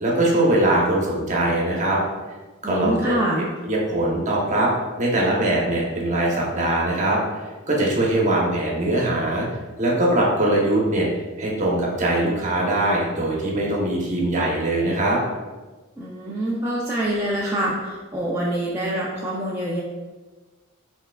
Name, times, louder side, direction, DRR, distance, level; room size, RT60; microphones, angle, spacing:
voice 1, 0.0-2.0 2.6-3.1 3.6-4.7 5.0-7.2 7.7-9.5 9.8-11.1 11.4-15.2, right 1 dB, 35° right, -3 dB, 1.0 m, -21 dB
voice 2, 2.6-3.5 16.0-19.8, right 1 dB, 10° right, -7 dB, 0.5 m, -25 dB
5.6 x 3.5 x 2.3 m, 1.3 s
head